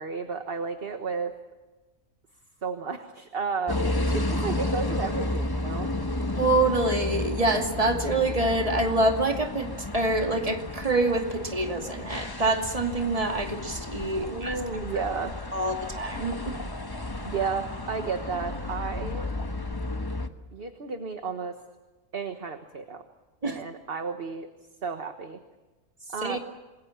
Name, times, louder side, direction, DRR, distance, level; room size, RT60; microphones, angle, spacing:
voice 1, 0.0-1.3 2.6-5.9 14.1-15.3 17.3-19.3 20.5-21.6 22.1-23.0 23.4-24.5 24.8-25.4 26.1-26.4, right 5 dB, 45° right, 7 dB, 1.5 m, -32 dB
sound 1, 3.7-20.3, left 2 dB, 15° left, 1.1 m, -32 dB
voice 2, 6.4-9.7 9.9-14.6 15.5-16.6 23.4-23.6 26.2-26.4, right 2 dB, 25° right, 3 dB, 2.6 m, -26 dB
28.0 x 21.5 x 7.3 m, 1.2 s
omnidirectional pair, 1.5 m